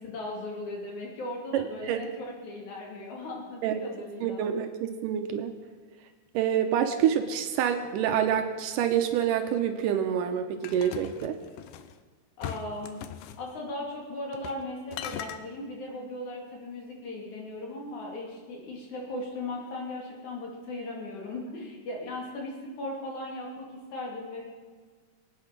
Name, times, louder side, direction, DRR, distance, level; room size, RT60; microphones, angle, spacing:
voice 1, 0.0-4.5 12.4-13.0 13.4-24.4, left 2 dB, 60° left, -1 dB, 4.0 m, -38 dB
voice 2, 1.5-2.0 3.6-3.8 4.2-5.5 6.3-11.4, right 9 dB, 80° right, 6 dB, 2.4 m, -27 dB
sound 1, 10.6-11.9 12.4-13.4 14.3-14.7 14.9-15.4, left 10 dB, 80° left, 2.3 m, -39 dB
23.5 x 8.8 x 6.0 m, 1.5 s
omnidirectional pair, 3.8 m